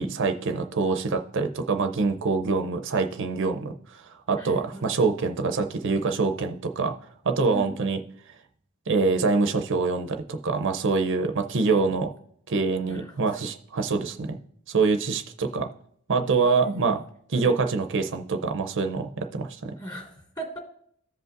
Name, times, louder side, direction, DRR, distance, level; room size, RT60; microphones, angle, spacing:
voice 1, 0.0-6.9 7.2-8.0 8.9-12.1 12.5-14.4 14.7-15.7 16.1-17.0 17.3-19.7, right 4 dB, 60° right, 6 dB, 0.6 m, -25 dB
voice 2, 4.4-4.9 7.5-7.8 11.5-12.0 12.8-13.5 16.4-17.0 17.3-17.5 19.8-20.6, right 1 dB, 20° left, 0 dB, 2.3 m, -39 dB
15.0 x 5.2 x 2.5 m, 0.66 s
head